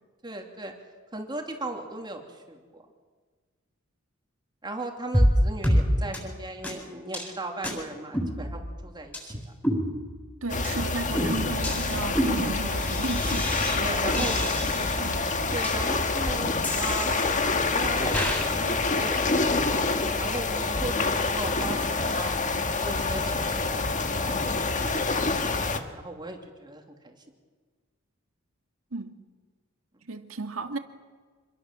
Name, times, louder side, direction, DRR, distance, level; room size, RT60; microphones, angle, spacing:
voice 1, 0.2-0.7 1.1-2.9 4.6-9.5 12.6-12.9 13.8-14.4 15.5-17.2 17.7-19.2 19.5-19.8 20.2-22.4 22.8-25.1 25.5-27.1, right 2 dB, 20° right, 2.9 m, -37 dB
sound 1, 5.1-5.4 5.6-5.8 6.1-6.2 6.6-6.7 7.1-7.3 7.6-7.7 8.1-8.8 9.1-9.2 9.6-10.3 10.6-10.8 11.1-13.8 14.1-15.0 15.6-15.7 16.6-17.6 18.1-18.5, equal, 10° left, 7.8 m, -28 dB
voice 2, 10.4-15.3 28.9-29.2 30.1-30.8, right 3 dB, 80° right, 2.0 m, -34 dB
sound 2, 10.5-25.8, left 3 dB, 40° left, 1.7 m, -27 dB
27.0 x 22.5 x 7.5 m
head